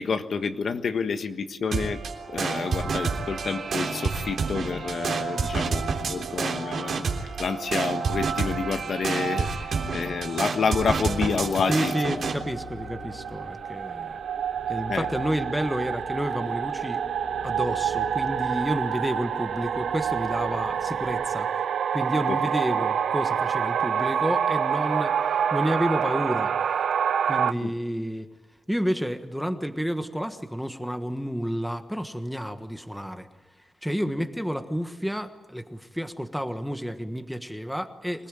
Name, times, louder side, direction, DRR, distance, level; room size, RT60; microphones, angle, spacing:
voice 1, 0.0-2.0 2.3-12.2 14.9-15.1 22.3-22.4 27.6-27.7, left 5 dB, 55° left, 8 dB, 1.4 m, -29 dB
sound 1, 1.7-12.4, right 5 dB, 60° right, 3.6 m, -29 dB
sound 2, 11.2-27.5, right 8 dB, 80° right, 0.9 m, -27 dB
voice 2, 11.7-14.2 14.7-17.0 17.4-21.5 21.9-26.5 27.3-28.3 28.7-33.3 33.8-38.3, equal, ahead, 7 dB, 1.4 m, -30 dB
sound 3, 11.9-21.3, left 3 dB, 20° left, 3.4 m, -46 dB
26.0 x 19.5 x 9.1 m, 1.1 s
wide cardioid pair, 150°, 0 cm